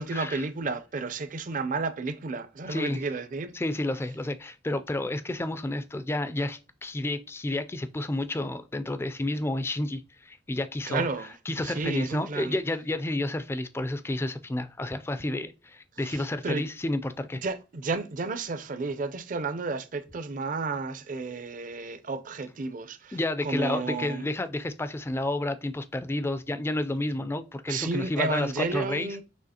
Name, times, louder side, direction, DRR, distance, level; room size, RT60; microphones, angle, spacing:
voice 1, 0.0-3.5 10.8-11.3 11.6-12.6 16.0-16.7 17.4-24.3 27.7-29.2, right 3 dB, 45° right, 0.5 m, -32 dB
voice 2, 2.6-3.0 3.5-11.1 11.5-17.4 23.1-29.1, left 1 dB, 15° left, 0.3 m, -30 dB
6.3 x 2.8 x 2.8 m
head